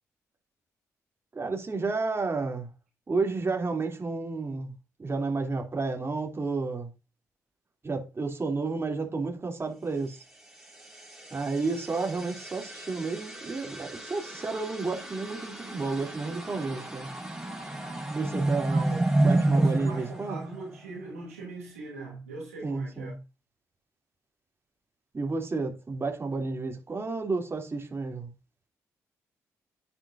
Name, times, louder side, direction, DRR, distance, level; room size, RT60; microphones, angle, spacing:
voice 1, 1.3-2.7 3.1-4.7 5.0-6.9 7.8-10.2 11.3-17.1 18.1-20.4 22.6-23.2 25.1-28.3, right 3 dB, 35° right, 3.1 m, -31 dB
sound 1, 10.3-21.0, right 2 dB, 5° right, 5.0 m, -31 dB
voice 2, 19.5-23.1, right 3 dB, 90° right, 2.8 m, -41 dB
10.5 x 8.9 x 2.7 m
hypercardioid pair, 40°, 8 cm